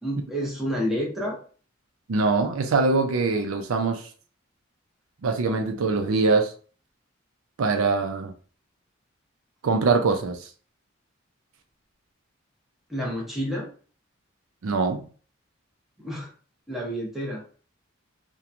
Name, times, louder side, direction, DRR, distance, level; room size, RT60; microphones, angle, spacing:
voice 1, 0.0-1.4 12.9-13.7 16.0-16.3 16.7-17.4, equal, ahead, 0.7 m, -29 dB
voice 2, 2.1-4.1 5.2-6.5 7.6-8.3 9.6-10.5 14.6-15.0, right 4 dB, 85° right, 0.4 m, -23 dB
2.9 x 2.2 x 2.4 m
head